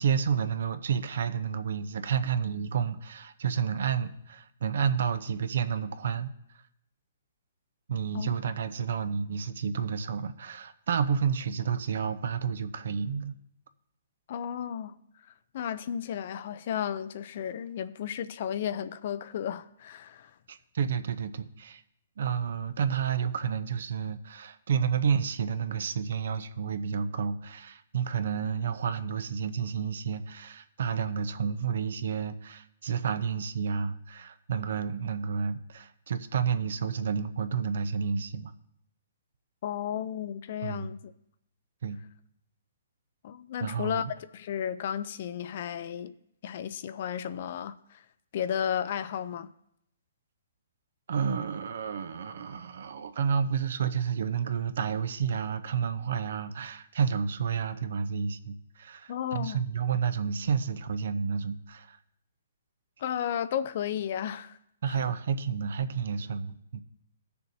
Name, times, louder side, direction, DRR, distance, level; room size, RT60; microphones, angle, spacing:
voice 1, 0.0-6.3 7.9-13.4 20.5-21.8 22.2-38.5 40.6-40.9 41.8-42.0 43.6-44.1 51.1-62.0 64.8-66.8, right 7 dB, 65° right, 0.7 m, -30 dB
voice 2, 14.3-15.0 15.5-20.3 39.6-41.0 43.2-46.1 46.4-48.0 48.3-49.5 59.1-59.6 63.0-64.6 64.9-65.0, left 9 dB, 45° left, 0.4 m, -33 dB
16.5 x 6.8 x 2.7 m
hypercardioid pair, 160°, 0 cm